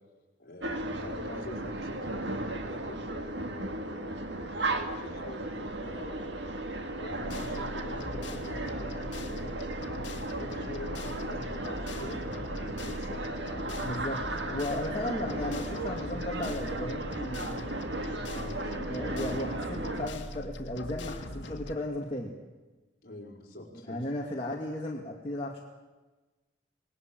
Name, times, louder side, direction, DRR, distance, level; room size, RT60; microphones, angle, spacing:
voice 1, 0.4-6.3 6.9-9.5 10.3-13.3 15.2-15.6 18.2-18.9 23.0-24.0, left 1 dB, 50° left, -1 dB, 5.2 m, -45 dB
sound 1, 0.6-20.1, right 2 dB, 70° right, 2.0 m, -35 dB
sound 2, 7.2-21.8, left 1 dB, 75° left, 2.0 m, -41 dB
voice 2, 13.8-14.2 14.5-17.7 18.7-22.3 23.8-25.6, left 1 dB, 30° left, -3 dB, 2.4 m, -35 dB
27.5 x 19.0 x 7.7 m, 1.2 s
head